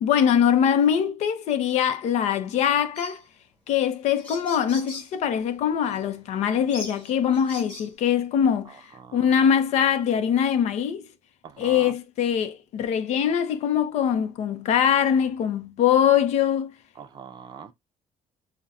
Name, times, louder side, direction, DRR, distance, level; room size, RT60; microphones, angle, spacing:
voice 1, 0.0-3.2 3.7-8.8 9.1-11.0 11.6-16.7, left 8 dB, 60° left, 0.6 m, -22 dB
sound 1, 2.9-3.2 3.9-4.0 4.2-5.1 5.9-6.0 6.7-7.9, left 2 dB, 10° left, 2.6 m, -40 dB
voice 2, 8.6-9.5 11.4-12.0 16.9-17.7, right 7 dB, 35° right, 0.5 m, -43 dB
5.6 x 2.1 x 2.4 m
cardioid pair, 165°, 13 cm